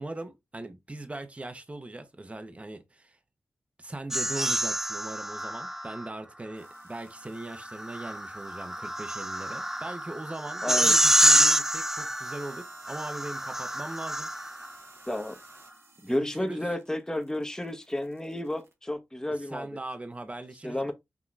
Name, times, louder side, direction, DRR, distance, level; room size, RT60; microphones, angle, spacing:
voice 1, 0.0-3.2 3.8-14.3 16.0-16.6 19.3-20.9, right 2 dB, 25° right, 0.8 m, -40 dB
sound 1, 4.1-6.1 7.5-14.7, right 1 dB, 10° right, 0.3 m, -27 dB
sound 2, 6.5-18.7, right 3 dB, 70° right, 1.2 m, -56 dB
voice 2, 10.6-11.0 15.1-15.4 16.0-19.7 20.6-20.9, left 1 dB, 10° left, 1.1 m, -31 dB
6.0 x 2.9 x 2.5 m
cardioid pair, 50°, 5 cm